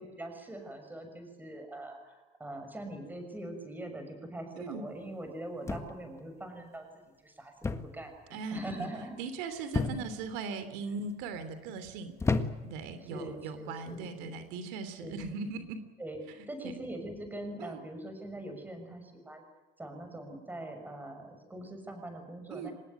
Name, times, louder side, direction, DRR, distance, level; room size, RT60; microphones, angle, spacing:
voice 1, 0.0-9.2 9.5-10.0 11.7-11.8 13.0-14.3 15.0-15.2 16.0-16.2 16.5-19.4 19.8-22.7, right 1 dB, 10° right, 6 dB, 6.4 m, -43 dB
voice 2, 4.6-4.9 8.3-8.9 9.2-12.1 12.6-15.8 16.3-16.4 16.6-16.7 17.6-17.8 22.5-22.7, right 4 dB, 80° right, 11 dB, 3.1 m, -39 dB
sound 1, 5.7-6.2 7.6-8.0 8.3-8.7 9.7-10.3 11.0-11.4 12.2-12.9 13.8-14.1, left 4 dB, 15° left, 1.6 m, -32 dB
25.0 x 20.0 x 9.1 m, 1.2 s
cardioid pair, 130°, 19 cm